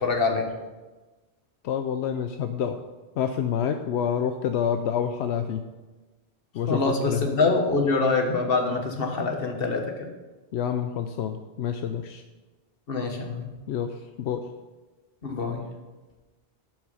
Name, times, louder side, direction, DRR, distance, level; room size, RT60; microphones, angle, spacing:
voice 1, 0.0-0.5 6.7-10.1 12.9-13.5 15.2-15.6, left 3 dB, 60° left, 3 dB, 1.6 m, -25 dB
voice 2, 1.6-2.8 3.2-5.6 6.5-7.3 10.5-12.2 13.7-14.5, left 8 dB, 85° left, 7 dB, 0.9 m, -28 dB
12.0 x 5.9 x 5.4 m, 1.2 s
omnidirectional pair, 1.1 m